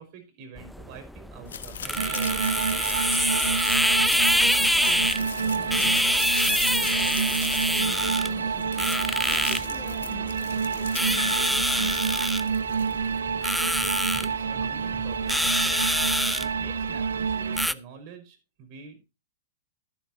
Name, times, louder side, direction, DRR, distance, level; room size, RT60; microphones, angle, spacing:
voice 1, 0.0-2.9 14.2-16.1 16.4-19.1, right 7 dB, 50° right, 7 dB, 5.1 m, -46 dB
sound 1, 0.6-17.7, equal, ahead, 0.5 m, -26 dB
sound 2, 1.5-13.2, left 8 dB, 80° left, 1.7 m, -41 dB
sound 3, 2.0-17.7, right 6 dB, 90° right, 0.5 m, -28 dB
voice 2, 4.1-6.1 6.4-8.9 9.3-11.9, left 11 dB, 30° left, 2 dB, 2.9 m, -46 dB
13.5 x 11.5 x 2.8 m, 0.26 s
hypercardioid pair, 115°, 0 cm